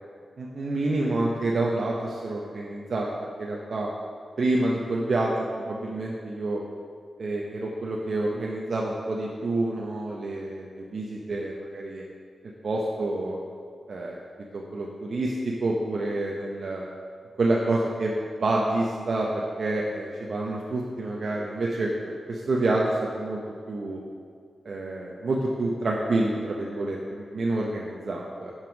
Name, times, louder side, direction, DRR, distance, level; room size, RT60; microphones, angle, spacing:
voice 1, 0.4-3.1 3.4-3.9 4.4-5.3 5.7-6.6 7.2-12.0 12.6-13.4 13.9-14.2 14.5-16.9 17.4-18.1 18.4-23.4 23.7-24.0 24.6-28.5, right 2 dB, 60° right, -2 dB, 0.6 m, -28 dB
5.8 x 5.5 x 5.1 m, 2.1 s
wide cardioid pair, 100°, 0 cm